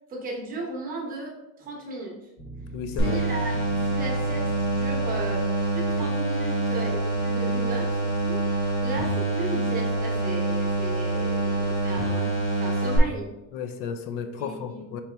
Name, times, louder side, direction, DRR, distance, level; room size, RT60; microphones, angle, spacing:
voice 1, 0.1-2.3 3.0-3.6 3.8-5.5 5.7-8.4 8.8-13.3 14.4-14.8, right 3 dB, 25° right, 0 dB, 0.9 m, -35 dB
sound 1, 2.4-5.8, right 2 dB, 15° left, 0.7 m, -41 dB
voice 2, 2.7-3.2 13.5-15.0, left 7 dB, 75° left, 9 dB, 0.5 m, -33 dB
sound 2, 3.0-13.0, right 2 dB, 40° left, 1.0 m, -26 dB
4.0 x 3.1 x 3.4 m, 0.94 s
cardioid pair, 175°, 33 cm